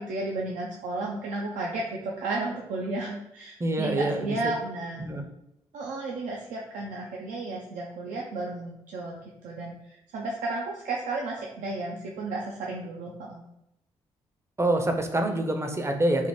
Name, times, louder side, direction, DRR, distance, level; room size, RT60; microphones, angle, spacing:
voice 1, 0.0-5.0 5.7-13.4, right 2 dB, 70° right, -2 dB, 0.4 m, -33 dB
voice 2, 3.6-4.4 5.0-5.2 14.6-16.3, right 1 dB, 20° right, 5 dB, 0.5 m, -26 dB
3.1 x 2.0 x 3.0 m, 0.83 s
hypercardioid pair, 45°, 13 cm